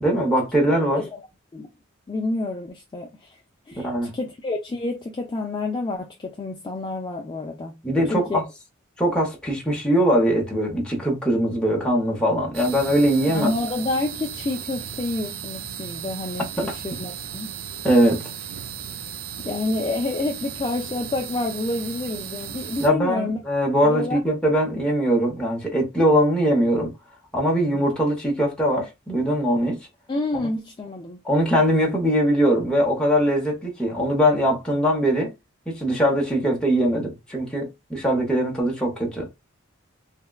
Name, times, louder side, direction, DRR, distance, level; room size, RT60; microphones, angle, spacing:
voice 1, 0.0-1.0 3.8-4.1 7.8-8.4 9.0-13.5 16.6-16.7 17.8-18.2 22.8-26.9 27.3-29.8 30.4-30.5 31.2-35.3 35.7-39.3, equal, 5° left, 0.7 m, -21 dB
voice 2, 2.1-3.4 3.7-7.8 8.1-8.4 13.3-17.5 19.4-23.4 23.8-24.2 24.7-24.8 27.7-27.9 30.1-31.2, left 2 dB, 20° left, 0.3 m, -28 dB
sound 1, 12.5-22.9, right 8 dB, 80° right, 0.5 m, -35 dB
3.4 x 2.1 x 2.2 m
head